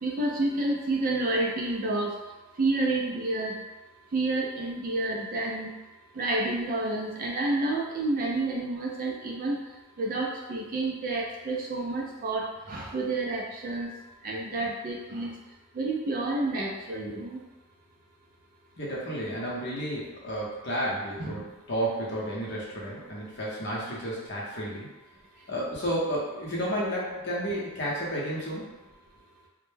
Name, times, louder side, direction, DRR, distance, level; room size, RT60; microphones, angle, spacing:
voice 1, 0.0-2.1 2.6-3.6 4.1-5.7 6.1-9.6 10.0-13.9 14.2-15.3 15.7-17.4 21.2-21.4, right 2 dB, 40° right, -1 dB, 0.3 m, -29 dB
voice 2, 18.8-24.9 25.5-28.6, equal, 55° left, -5 dB, 0.7 m, -32 dB
2.1 x 2.0 x 3.1 m, 1.1 s
head